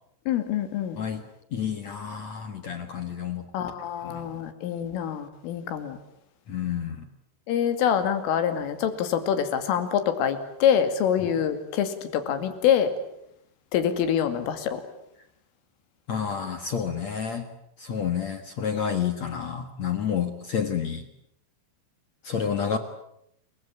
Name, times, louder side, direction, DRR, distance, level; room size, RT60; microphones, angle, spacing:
voice 1, 0.3-1.0 3.5-6.0 7.5-12.9 13.7-14.8, left 8 dB, 85° left, 9 dB, 5.0 m, -25 dB
voice 2, 1.5-3.5 4.0-4.3 6.5-7.0 11.2-11.3 16.1-17.5 17.8-21.0 22.2-22.8, left 7 dB, 65° left, 8 dB, 1.7 m, -29 dB
28.5 x 23.5 x 8.7 m, 0.75 s
omnidirectional pair, 5.7 m